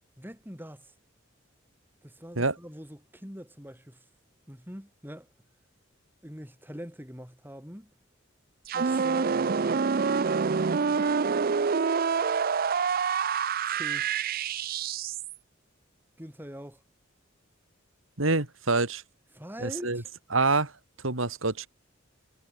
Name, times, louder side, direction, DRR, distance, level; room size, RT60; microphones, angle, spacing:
voice 1, 0.2-0.9 2.0-4.0 4.5-5.3 6.2-7.9 8.7-9.6 13.7-14.1 16.2-16.8 19.3-20.1, equal, 10° right, 6.5 m, -43 dB
sound 1, 8.7-15.3, right 5 dB, 45° right, 0.5 m, -27 dB
voice 2, 18.2-19.0 19.6-20.0 20.3-20.7 21.0-21.7, right 3 dB, 80° right, 2.9 m, -26 dB
head